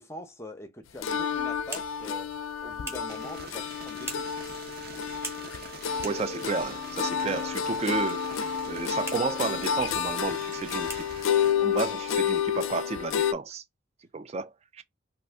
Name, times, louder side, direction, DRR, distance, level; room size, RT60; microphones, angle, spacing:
voice 1, 0.0-2.3 2.6-4.4, left 1 dB, 15° left, 0.6 m, -43 dB
sound 1, 1.0-13.3, left 8 dB, 80° left, 0.4 m, -30 dB
sound 2, 1.2-13.5, right 1 dB, 10° right, 0.9 m, -47 dB
sound 3, 3.1-11.5, right 4 dB, 50° right, 0.8 m, -45 dB
voice 2, 6.0-11.1 11.6-13.6 14.1-14.8, right 4 dB, 30° right, 0.3 m, -32 dB
2.6 x 2.5 x 3.4 m
head